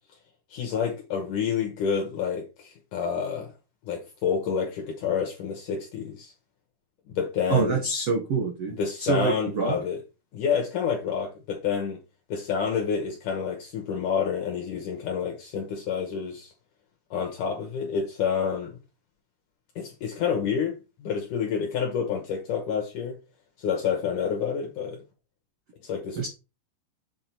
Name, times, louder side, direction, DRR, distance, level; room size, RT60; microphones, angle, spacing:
voice 1, 0.5-3.5 3.8-6.3 7.1-7.8 8.8-10.0 10.3-12.0 12.3-16.5 17.1-18.8 19.8-23.2 23.6-25.0 25.8-26.3, left 7 dB, 70° left, 2.0 m, -28 dB
voice 2, 7.5-9.8 26.1-26.3, right 4 dB, 70° right, 1.4 m, -26 dB
7.6 x 3.5 x 4.4 m
omnidirectional pair, 4.8 m